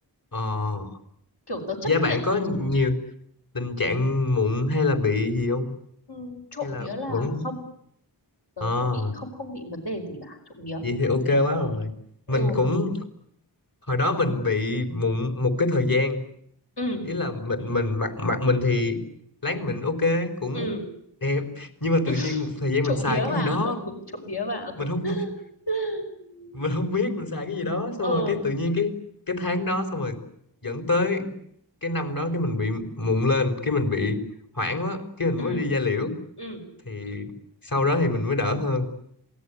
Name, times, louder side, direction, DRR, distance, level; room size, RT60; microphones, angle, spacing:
voice 1, 0.3-0.9 1.8-3.0 3.5-5.7 6.6-7.4 8.6-9.1 10.8-11.9 12.3-13.0 13.9-16.2 17.1-19.0 19.4-20.7 21.2-23.8 24.8-25.2 26.5-28.9 29.3-30.2 30.6-31.3 31.8-34.2 34.5-36.1 36.9-37.3 37.6-38.9, left 2 dB, 55° left, 6 dB, 4.5 m, -25 dB
voice 2, 1.5-2.2 6.1-7.6 8.6-10.8 12.3-12.6 16.8-17.1 20.5-20.8 22.1-22.4 22.8-25.3 25.7-26.6 28.0-28.4 35.4-35.6 36.4-36.6, equal, 70° left, 3 dB, 5.6 m, -32 dB
27.0 x 20.0 x 9.9 m, 0.71 s
wide cardioid pair, 40°, 41 cm